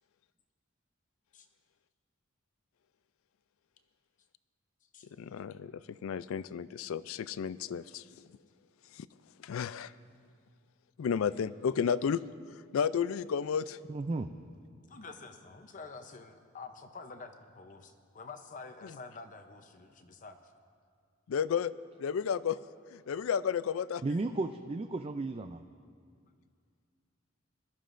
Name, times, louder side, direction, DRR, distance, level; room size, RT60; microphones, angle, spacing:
voice 1, 5.2-8.0 9.0-9.1 9.4-9.9 11.0-12.2 12.7-13.8 21.3-21.7 22.0-22.6 22.9-24.0, left 7 dB, 85° left, 17 dB, 0.4 m, -32 dB
voice 2, 13.9-14.3 24.0-25.6, right 2 dB, 30° right, 7 dB, 0.3 m, -34 dB
voice 3, 14.9-20.4, left 4 dB, 40° left, 6 dB, 0.7 m, -48 dB
21.5 x 13.0 x 2.6 m, 2.2 s
head